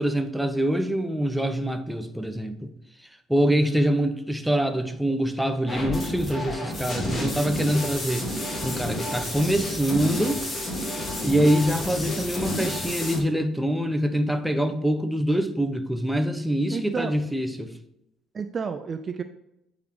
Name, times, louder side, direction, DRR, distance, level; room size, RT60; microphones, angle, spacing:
voice 1, 0.0-2.7 3.3-10.4 11.2-17.7, equal, 5° right, 8 dB, 0.8 m, -25 dB
voice 2, 3.5-4.1 16.7-17.1 18.3-19.2, right 5 dB, 40° right, 9 dB, 0.4 m, -31 dB
sound 1, 5.7-13.2, left 1 dB, 30° left, 2.1 m, -30 dB
8.5 x 4.0 x 3.2 m, 0.83 s
hypercardioid pair, 55°, 0 cm